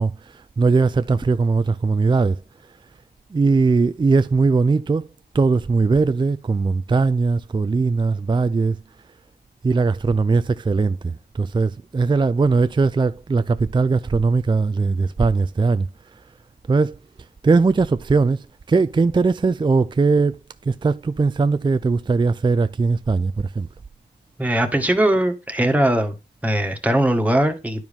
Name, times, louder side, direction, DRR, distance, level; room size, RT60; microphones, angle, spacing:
voice 1, 0.0-2.4 3.3-5.1 5.3-8.8 9.6-15.9 16.7-17.0 17.4-20.4 20.7-23.7, right 4 dB, 25° right, 0.4 m, -19 dB
voice 2, 24.4-26.1 26.4-27.9, right 1 dB, 10° right, 1.7 m, -20 dB
10.5 x 4.8 x 3.6 m
cardioid pair, 50°, 19 cm